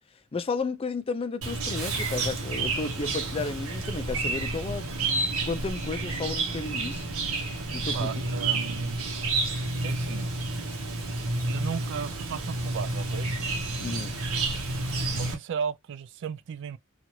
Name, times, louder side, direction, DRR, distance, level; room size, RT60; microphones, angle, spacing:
voice 1, 0.3-4.9 5.5-7.1 7.7-8.1 13.8-14.2, left 3 dB, 25° left, 0.4 m, -33 dB
Chirp tweet, 1.4-15.3, right 2 dB, 75° right, 0.9 m, -30 dB
voice 2, 7.9-9.0 9.8-10.3 11.4-13.3 15.1-16.8, right 6 dB, 60° right, 0.3 m, -35 dB
2.8 x 2.4 x 3.0 m
head